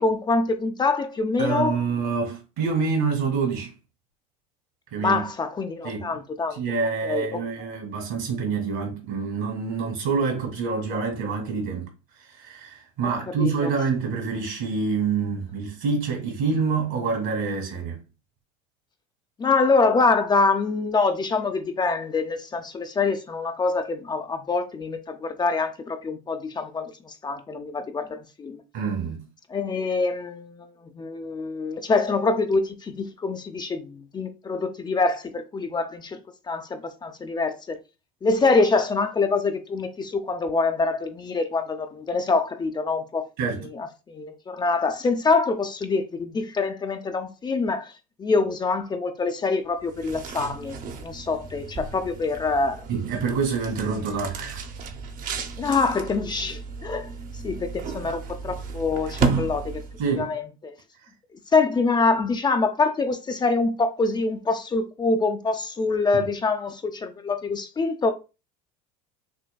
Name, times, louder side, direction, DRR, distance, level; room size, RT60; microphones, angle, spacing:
voice 1, 0.0-1.8 4.9-6.6 7.0-7.4 13.0-13.1 13.4-13.7 19.4-28.6 29.5-36.2 36.5-37.8 38.2-43.2 43.6-47.9 48.2-52.9 55.6-59.8 60.1-60.7 61.5-68.1, left 3 dB, 20° left, 0.5 m, -25 dB
voice 2, 1.4-3.7 4.9-5.3 5.8-6.2 6.5-11.9 12.4-18.0 28.7-29.2 43.4-43.7 52.9-54.6 60.0-60.3 66.1-66.3, right 5 dB, 70° right, 2.1 m, -26 dB
sound 1, 49.8-60.2, right 5 dB, 45° right, 0.8 m, -33 dB
6.1 x 2.2 x 2.2 m
hypercardioid pair, 85°, 19 cm